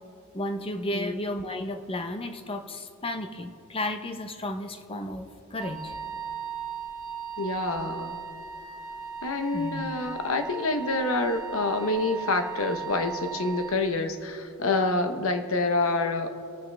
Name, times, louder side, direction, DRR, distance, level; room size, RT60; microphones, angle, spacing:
voice 1, 0.3-5.9 9.5-9.9, left 1 dB, 25° left, 7 dB, 0.8 m, -33 dB
Wind instrument woodwind instrument, 5.6-13.8, right 6 dB, 5° right, 2.7 m, -37 dB
voice 2, 7.4-8.2 9.2-16.3, left 3 dB, 70° left, 7 dB, 1.0 m, -27 dB
27.5 x 9.3 x 3.4 m, 2.7 s
head